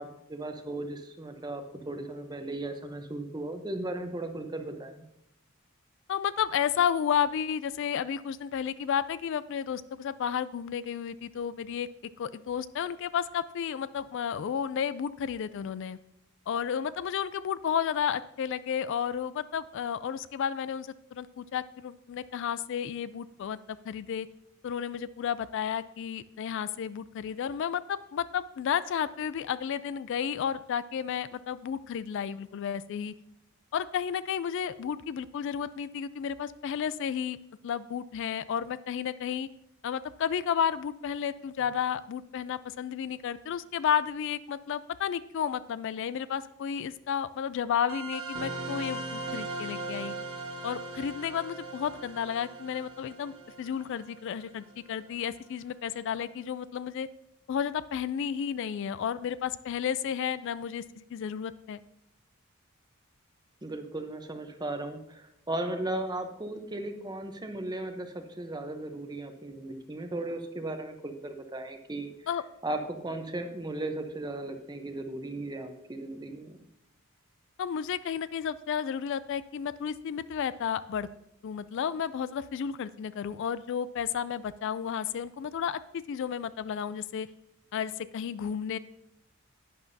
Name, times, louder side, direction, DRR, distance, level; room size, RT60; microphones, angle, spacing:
voice 1, 0.0-5.0 63.6-72.1 72.6-76.6, right 2 dB, 20° right, 6 dB, 0.8 m, -36 dB
voice 2, 6.1-11.9 12.2-16.0 16.5-23.6 23.8-24.3 24.6-33.1 33.7-37.4 37.6-39.5 39.8-50.1 50.6-57.1 57.5-61.8 72.3-72.4 77.6-81.1 81.4-87.3 87.7-88.8, left 8 dB, 60° left, 16 dB, 0.3 m, -32 dB
sound 1, 47.9-55.0, right 2 dB, 70° right, 1.4 m, -39 dB
11.0 x 9.2 x 2.7 m, 0.81 s
head